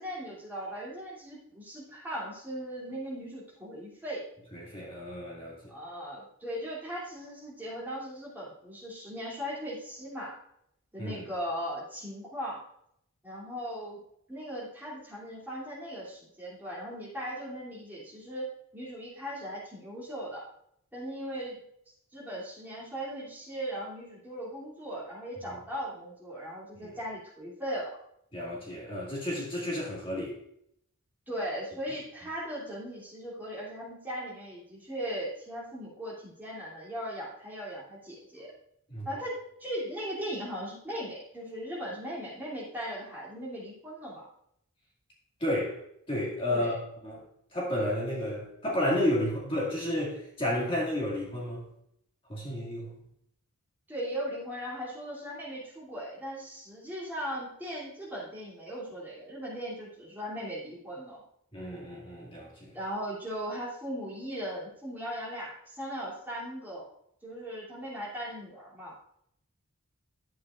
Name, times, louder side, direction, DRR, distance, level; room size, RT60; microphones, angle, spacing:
voice 1, 0.0-4.2 5.7-10.4 10.9-12.6 13.2-14.0 14.3-20.4 20.9-21.6 22.1-27.9 31.3-38.5 39.0-44.3 46.5-46.8 53.9-61.2 62.7-66.9 67.2-68.9, equal, 10° right, -7 dB, 2.7 m, -38 dB
voice 2, 4.5-5.6 11.0-11.2 26.8-26.9 28.3-30.4 38.9-39.1 45.4-45.8 46.1-46.8 47.0-47.2 47.5-51.6 52.3-52.9 61.5-62.7, left 1 dB, 25° left, -5 dB, 2.1 m, -31 dB
11.0 x 8.3 x 2.4 m, 0.74 s
head